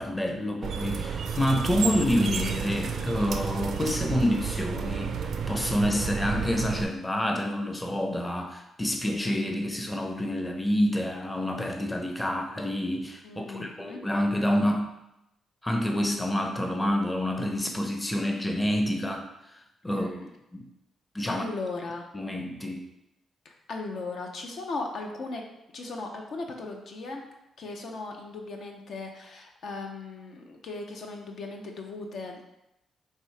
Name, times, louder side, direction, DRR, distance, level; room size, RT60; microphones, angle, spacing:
voice 1, 0.0-14.9 15.6-19.3 19.8-20.1 20.5-20.6 21.1-21.4 22.1-22.8, left 1 dB, 15° left, 4 dB, 0.6 m, -28 dB
sound 1, 0.6-6.8, right 6 dB, 70° right, 0.4 m, -31 dB
voice 2, 13.2-14.0 19.9-20.3 21.3-22.1 23.4-25.4 25.7-27.3 27.6-32.4, left 3 dB, 70° left, 2 dB, 0.6 m, -37 dB
4.4 x 2.8 x 3.2 m, 0.87 s
supercardioid pair, 60°, 0 cm